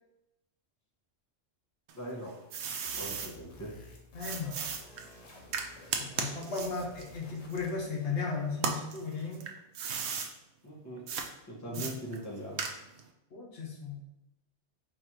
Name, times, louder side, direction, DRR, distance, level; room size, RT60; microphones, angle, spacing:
voice 1, 1.9-2.4 2.9-3.7 10.6-11.0 11.4-12.6, right 1 dB, 15° left, -4 dB, 0.9 m, -41 dB
sound 1, 1.9-3.3 4.2-8.1 8.5-10.3 11.1-11.3 11.7-13.1, right 6 dB, 70° right, 0.8 m, -36 dB
sound 2, 2.8-7.9, left 3 dB, 90° left, 1.3 m, -53 dB
voice 2, 4.1-4.7 6.0-9.5 11.7-11.8 13.3-14.0, left 4 dB, 65° left, -2 dB, 1.3 m, -36 dB
4.5 x 2.5 x 4.4 m, 0.90 s
omnidirectional pair, 1.3 m